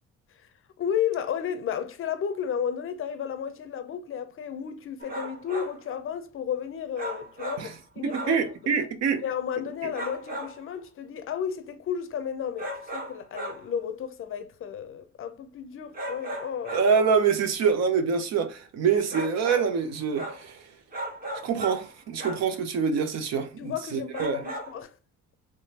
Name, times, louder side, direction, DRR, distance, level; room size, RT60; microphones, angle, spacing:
voice 1, 0.8-8.5 9.2-16.9 22.1-22.2 23.6-24.9, left 8 dB, 45° left, 0.5 m, -33 dB
sound 1, 5.0-5.8 7.0-7.7 8.1-8.5 9.9-10.6 12.6-13.7 15.9-17.0 19.1-19.8 20.1-20.5 20.9-21.9 22.2-22.5 24.1-24.8, right 1 dB, 30° right, 1.0 m, -36 dB
voice 2, 8.0-9.2 9.8-9.9 16.7-20.6 21.4-24.4, right 6 dB, 60° right, 0.7 m, -25 dB
3.6 x 3.1 x 2.8 m
cardioid pair, 125°, 31 cm